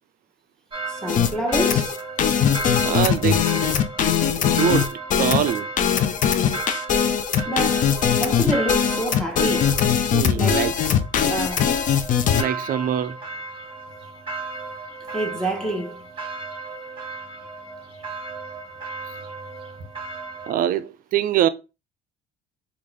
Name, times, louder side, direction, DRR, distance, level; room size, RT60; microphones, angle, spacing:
sound 1, 0.7-20.5, right 3 dB, 30° right, 1.4 m, -35 dB
voice 1, 0.9-2.0 7.4-7.9 8.2-9.8 10.4-10.7 11.2-11.7 15.1-16.0, right 1 dB, 5° left, 0.8 m, -27 dB
sound 2, 1.1-12.4, left 8 dB, 50° left, 0.5 m, -21 dB
voice 2, 2.8-3.5 4.5-5.7 10.1-10.7 12.4-13.2 20.5-21.5, right 10 dB, 55° right, 0.4 m, -23 dB
3.5 x 2.4 x 3.1 m
supercardioid pair, 80°, 18 cm